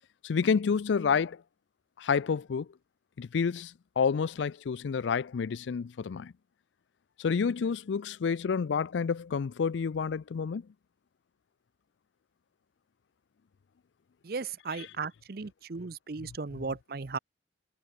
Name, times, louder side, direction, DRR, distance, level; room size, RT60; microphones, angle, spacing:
voice 1, 0.2-1.4 2.0-2.7 3.2-6.3 7.2-10.7 14.7-14.9 16.2-16.6, left 6 dB, 80° left, 0.4 m, -29 dB
voice 2, 14.2-17.2, right 4 dB, 55° right, 0.7 m, -36 dB
head